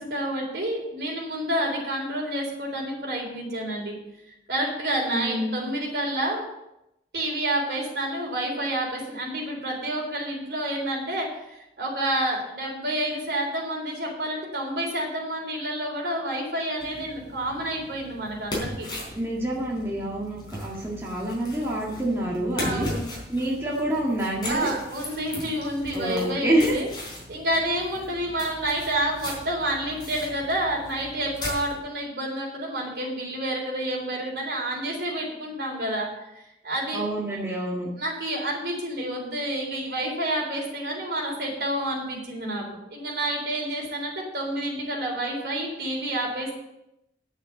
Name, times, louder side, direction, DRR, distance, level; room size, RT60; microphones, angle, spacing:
voice 1, 0.0-3.9 4.5-6.5 7.1-18.9 22.6-23.1 24.4-26.9 27.3-36.1 36.3-37.0 38.0-46.5, right 1 dB, 65° right, -1 dB, 3.7 m, -29 dB
voice 2, 5.1-5.6 19.1-22.9 23.3-24.7 25.9-26.7 36.9-37.9, right 1 dB, 15° right, -5 dB, 1.8 m, -27 dB
sound 1, 16.8-31.8, left 1 dB, 25° left, 3.9 m, -38 dB
9.2 x 7.9 x 7.0 m, 0.86 s
head